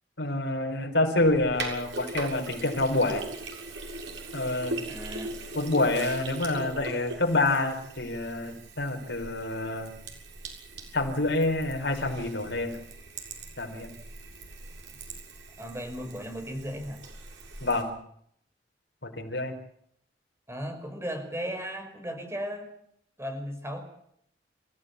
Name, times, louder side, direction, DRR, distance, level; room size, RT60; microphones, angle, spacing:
voice 1, 0.2-3.2 4.3-4.8 5.6-10.0 10.9-12.8 13.6-13.9 17.6-17.9 19.0-19.5, left 2 dB, 70° left, 4 dB, 5.2 m, -27 dB
Sink (filling or washing), 1.2-17.8, right 2 dB, 85° right, 7.1 m, -40 dB
voice 2, 4.9-5.3 15.6-17.0 20.5-22.7 23.2-23.8, equal, 15° right, 6 dB, 5.8 m, -36 dB
29.0 x 15.5 x 8.6 m, 0.69 s
head